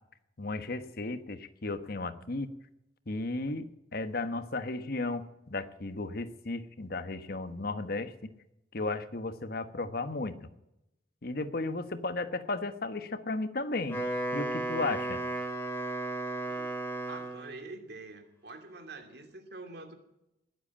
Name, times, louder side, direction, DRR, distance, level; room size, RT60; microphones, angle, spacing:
voice 1, 0.4-2.5 3.1-8.3 8.7-10.5 11.2-14.0 14.3-15.2, left 2 dB, 55° left, 11 dB, 1.2 m, -34 dB
Wind instrument woodwind instrument, 13.7-17.6, right 2 dB, 15° left, 2.9 m, -34 dB
voice 2, 16.4-16.7 17.1-20.0, right 3 dB, 60° right, 5 dB, 2.7 m, -46 dB
20.0 x 8.1 x 8.8 m, 0.87 s
head